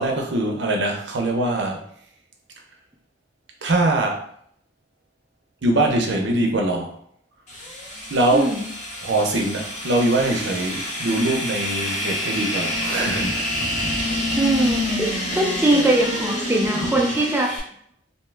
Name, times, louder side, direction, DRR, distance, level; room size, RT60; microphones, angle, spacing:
voice 1, 0.0-1.8 3.6-4.2 5.6-6.9 8.1-8.5 9.0-13.5, right 2 dB, 70° right, 1 dB, 0.7 m, -22 dB
sound 1, 7.5-17.6, left 1 dB, 40° left, 0.8 m, -27 dB
voice 2, 8.3-8.6 14.4-17.6, right 1 dB, 10° right, -1 dB, 0.5 m, -21 dB
2.7 x 2.3 x 3.2 m, 0.65 s
head